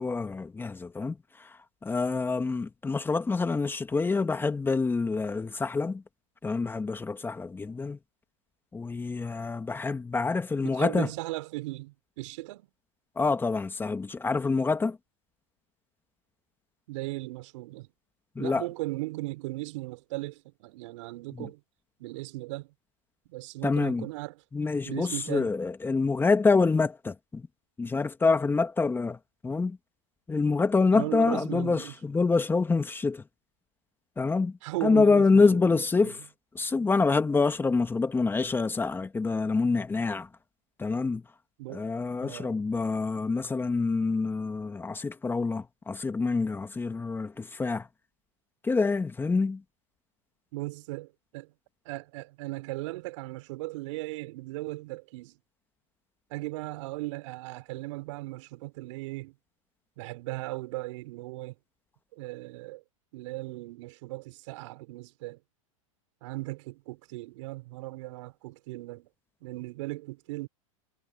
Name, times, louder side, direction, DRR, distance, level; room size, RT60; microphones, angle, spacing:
voice 1, 0.0-6.0 6.4-8.0 8.7-11.1 13.2-15.0 18.4-18.7 21.3-21.5 23.6-24.1 24.5-27.5 27.8-29.2 29.4-29.8 30.3-33.2 34.2-36.2 36.6-40.3 40.8-41.2 41.7-47.9 48.6-49.6, left 4 dB, 10° left, 2.0 m, -26 dB
voice 2, 10.6-12.7 16.9-17.9 18.4-21.6 22.0-22.7 23.3-24.4 24.8-25.5 30.9-31.9 34.6-36.1 41.6-41.8 42.2-42.5 50.5-51.5 51.8-55.4 56.3-59.3 60.0-61.5 62.1-62.8 63.1-65.4 66.2-69.1 69.4-70.5, right 20 dB, 60° right, 5.8 m, -37 dB
hypercardioid pair, 115°, 18 cm